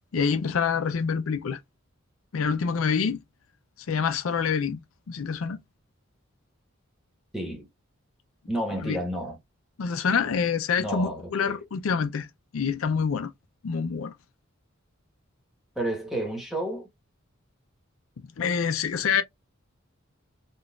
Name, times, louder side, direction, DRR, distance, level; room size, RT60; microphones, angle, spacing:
voice 1, 0.1-1.6 2.3-3.2 3.9-4.8 5.1-5.6 8.8-9.0 9.8-12.3 12.5-13.3 13.6-14.1 18.4-19.2, left 6 dB, 80° left, 0.5 m, -26 dB
voice 2, 7.3-7.7 8.5-9.4 10.8-11.6 15.7-16.9, right 1 dB, ahead, 1.3 m, -31 dB
3.8 x 2.4 x 2.3 m
head